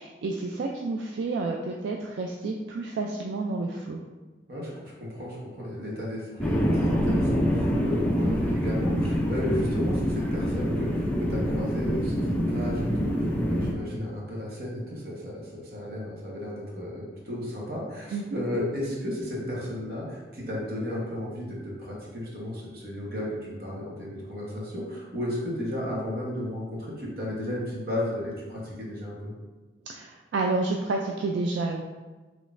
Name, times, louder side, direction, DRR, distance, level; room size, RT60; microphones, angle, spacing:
voice 1, 0.0-4.0 7.7-7.9 18.1-18.4 29.9-31.8, right 3 dB, 80° right, 1 dB, 0.3 m, -30 dB
voice 2, 4.5-29.3, left 1 dB, 55° right, -5 dB, 1.2 m, -34 dB
sound 1, 6.4-13.7, equal, 10° left, 0.4 m, -26 dB
5.0 x 3.1 x 2.5 m, 1.2 s
head